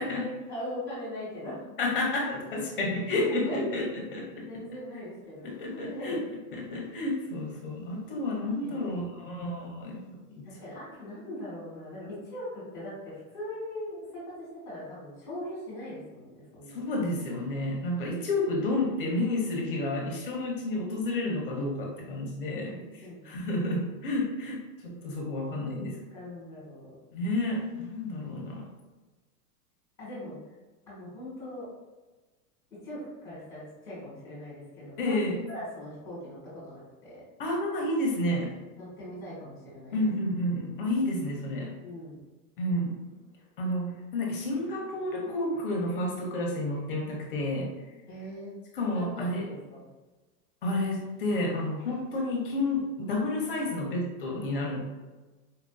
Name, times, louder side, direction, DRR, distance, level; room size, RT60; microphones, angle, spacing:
voice 1, 0.0-1.6 3.2-3.6 4.5-5.4 5.8-6.2 8.6-9.5 10.4-14.2 14.6-16.8 22.6-23.2 25.6-26.9 30.0-30.4 30.9-31.7 32.8-35.2 35.5-37.2 38.8-39.9 41.8-42.2 48.1-48.6 48.9-49.9, left 1 dB, 5° left, -9 dB, 1.0 m, -40 dB
voice 2, 1.8-4.6 5.4-6.2 6.5-10.5 16.7-26.0 27.1-28.7 35.0-35.4 37.4-38.5 39.9-41.7 42.6-43.0 43.6-47.7 48.7-49.5 50.6-54.8, left 1 dB, 35° left, -1 dB, 0.6 m, -30 dB
4.1 x 2.5 x 2.2 m, 1.2 s
supercardioid pair, 175°, 47 cm